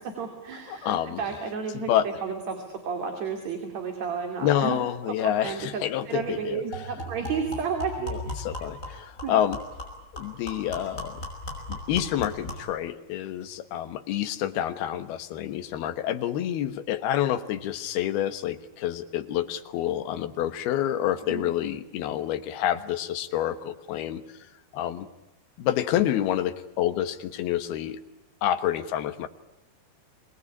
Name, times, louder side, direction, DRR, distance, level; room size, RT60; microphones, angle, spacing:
voice 1, 0.2-1.9 2.2-4.8 5.2-8.3 9.2-9.3 21.3-21.5, right 6 dB, 45° right, 4 dB, 3.6 m, -32 dB
voice 2, 0.7-1.2 1.7-2.1 4.4-6.6 8.0-9.6 10.1-11.3 11.7-24.4 24.7-25.1 25.6-28.0 28.4-29.3, left 11 dB, 75° left, 11 dB, 3.2 m, -28 dB
sound 1, 5.8-5.9 6.2-6.3 6.7-12.7, left 1 dB, 20° left, 5.7 m, -37 dB
26.5 x 20.5 x 9.9 m, 0.89 s
omnidirectional pair, 4.5 m